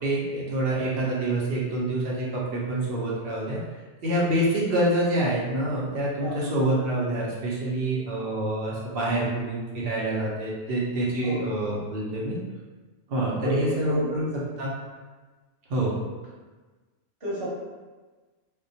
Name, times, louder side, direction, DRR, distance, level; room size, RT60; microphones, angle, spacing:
voice 1, 0.0-3.6 4.0-12.4 13.1-14.2 14.6-14.7 15.7-16.0, right 1 dB, 60° right, -5 dB, 0.7 m, -26 dB
voice 2, 6.2-6.5 11.2-11.4 13.4-14.2 17.2-17.5, equal, 30° right, -10 dB, 0.9 m, -31 dB
2.2 x 2.1 x 2.6 m, 1.3 s
omnidirectional pair, 1.3 m